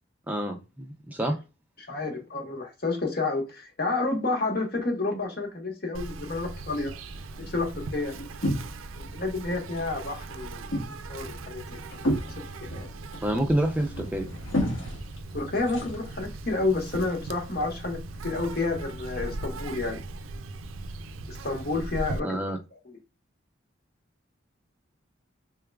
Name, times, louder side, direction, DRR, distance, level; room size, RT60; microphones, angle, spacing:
voice 1, 0.3-1.4 13.2-14.3 22.2-22.6, right 1 dB, 10° right, 0.4 m, -28 dB
voice 2, 1.8-6.9 7.5-8.1 8.9-10.7 11.1-11.8 12.3-12.4 12.7-12.9 15.3-20.0 21.3-22.4 22.9-23.0, left 3 dB, 50° left, 1.2 m, -30 dB
Insect, 5.9-22.2, right 2 dB, 90° right, 0.4 m, -39 dB
sound 1, 7.1-9.1 9.4-10.0 10.3-16.3, equal, 80° left, 1.6 m, -33 dB
3.7 x 3.5 x 2.3 m
head